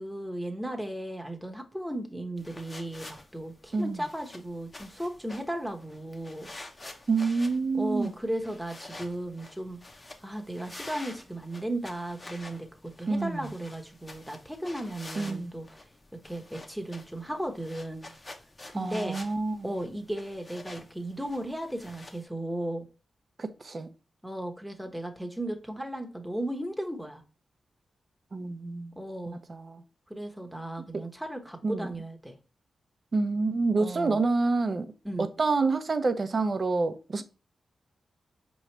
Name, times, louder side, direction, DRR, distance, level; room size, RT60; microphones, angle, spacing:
voice 1, 0.0-6.5 7.7-9.8 10.2-15.9 16.2-18.1 18.7-19.2 19.6-22.8 24.2-27.2 29.0-29.4 30.1-32.4 33.8-34.2 35.0-35.3, right 1 dB, ahead, 1.0 m, -35 dB
sound 1, 2.4-22.2, left 2 dB, 35° left, 0.8 m, -48 dB
voice 2, 7.1-8.1 13.1-13.5 15.2-15.5 18.7-19.7 23.4-23.9 28.3-28.9 29.3-29.8 30.9-31.0 31.6-31.9 33.1-34.9 35.2-37.2, right 3 dB, 50° right, 0.6 m, -28 dB
4.9 x 3.1 x 3.2 m
cardioid pair, 50°, 0 cm